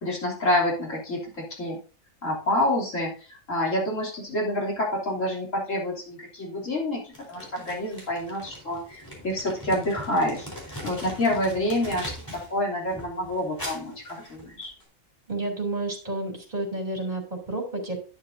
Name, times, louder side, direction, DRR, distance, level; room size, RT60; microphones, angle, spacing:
voice 1, 0.0-1.8 2.2-10.5 10.8-14.7, left 1 dB, 65° left, -2 dB, 3.5 m, -28 dB
Crumpling crinkling, 7.1-12.5 12.8-14.8, equal, 15° left, 4.0 m, -41 dB
voice 2, 15.3-18.0, right 2 dB, 35° right, -1 dB, 3.4 m, -30 dB
10.5 x 9.7 x 2.7 m, 0.35 s
omnidirectional pair, 1.4 m